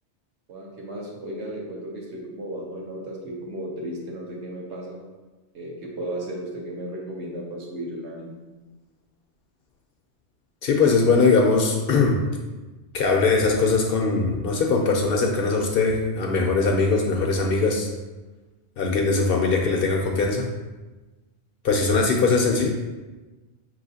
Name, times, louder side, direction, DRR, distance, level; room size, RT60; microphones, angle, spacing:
voice 1, 0.5-5.0 5.5-8.3, right 1 dB, 70° right, -2 dB, 1.2 m, -34 dB
voice 2, 10.6-12.2 12.9-17.9 18.8-20.5 21.6-22.7, left 4 dB, 65° left, 1 dB, 0.7 m, -21 dB
5.4 x 3.0 x 2.7 m, 1.2 s
omnidirectional pair, 1.2 m